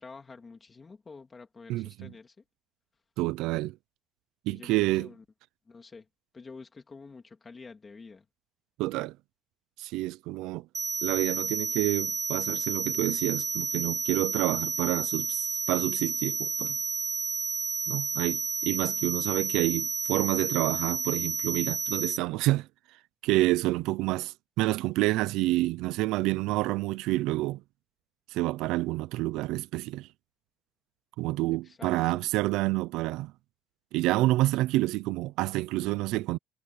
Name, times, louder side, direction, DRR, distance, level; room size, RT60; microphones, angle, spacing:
voice 1, 0.0-2.4 4.5-5.2 5.6-6.1 6.3-8.2 31.5-32.2, left 4 dB, 15° left, 3.2 m, -48 dB
voice 2, 1.7-2.1 3.2-3.7 4.5-5.1 8.8-9.1 9.8-10.7 11.0-15.4 15.7-16.8 17.9-22.7 23.2-27.6 28.3-30.1 31.2-33.3 33.9-36.4, right 18 dB, 70° right, 0.5 m, -28 dB
sound 1, 10.7-22.2, right 4 dB, 15° right, 0.5 m, -31 dB
cardioid pair, 175°, 0 cm